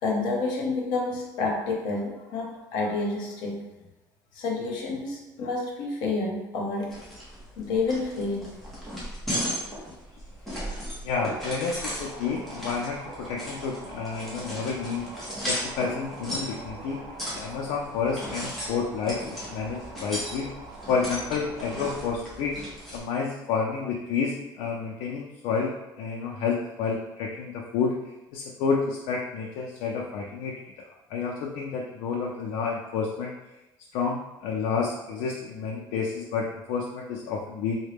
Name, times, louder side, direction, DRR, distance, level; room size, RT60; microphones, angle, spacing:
voice 1, 0.0-3.6 4.3-6.9 7.6-8.5, left 3 dB, 55° left, -1 dB, 0.8 m, -29 dB
sound 1, 6.9-23.0, equal, ahead, 0.8 m, -36 dB
voice 2, 11.0-15.0 15.5-17.0 17.3-20.5 20.9-22.5 22.9-27.9 28.3-30.5 31.1-33.3 33.9-37.8, left 5 dB, 70° left, -1 dB, 0.4 m, -30 dB
sound 2, 12.0-22.2, right 3 dB, 65° right, 0.7 m, -44 dB
3.9 x 2.1 x 3.4 m, 0.99 s
cardioid pair, 170°, 9 cm